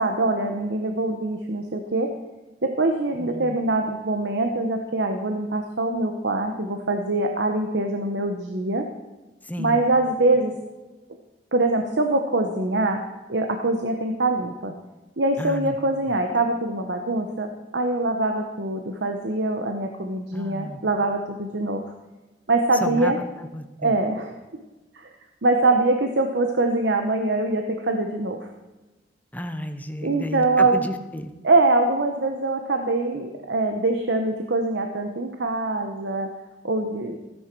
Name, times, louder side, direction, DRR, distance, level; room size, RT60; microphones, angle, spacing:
voice 1, 0.0-2.1 2.6-8.9 9.6-10.5 11.5-14.7 15.2-21.8 22.5-23.2 23.8-24.3 24.9-25.1 25.4-28.5 30.0-30.9 31.4-36.3 36.6-37.2, right 2 dB, 75° right, 4 dB, 1.0 m, -23 dB
voice 2, 3.2-3.6 9.4-9.9 15.4-15.7 20.3-20.8 22.8-23.1 23.4-23.9 29.3-31.3, equal, 10° left, 8 dB, 0.8 m, -32 dB
15.5 x 10.0 x 4.6 m, 1.1 s
head